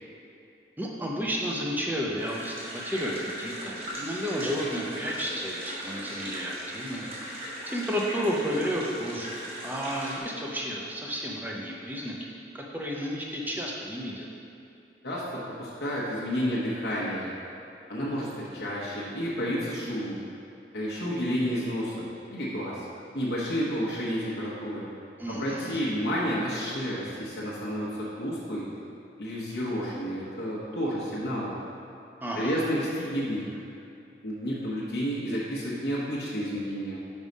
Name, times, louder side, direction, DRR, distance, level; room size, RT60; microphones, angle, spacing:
voice 1, 0.8-14.3 25.2-25.8 32.2-32.5, equal, 10° right, -2 dB, 0.7 m, -32 dB
sound 1, 2.2-10.2, equal, 35° right, 1.4 m, -38 dB
voice 2, 15.0-17.3 17.9-20.2 20.7-22.9 23.1-24.9 25.3-28.7 29.2-31.5 32.3-33.6 34.2-37.0, equal, 65° left, -7 dB, 1.1 m, -31 dB
5.4 x 4.8 x 5.3 m, 2.6 s
head